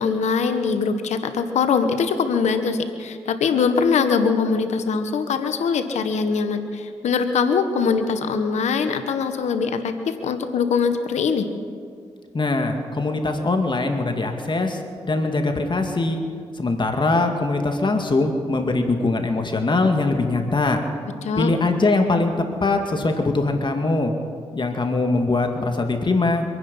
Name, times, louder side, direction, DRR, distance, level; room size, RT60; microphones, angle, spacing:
voice 1, 0.0-11.5 21.2-21.5, left 5 dB, 80° left, 9 dB, 1.1 m, -22 dB
voice 2, 12.3-14.8 15.1-16.2 16.5-20.8 21.4-22.3 22.6-24.1 24.5-26.5, left 3 dB, 45° left, 4 dB, 2.1 m, -22 dB
25.0 x 9.9 x 5.5 m, 2.2 s
supercardioid pair, 45°, 12 cm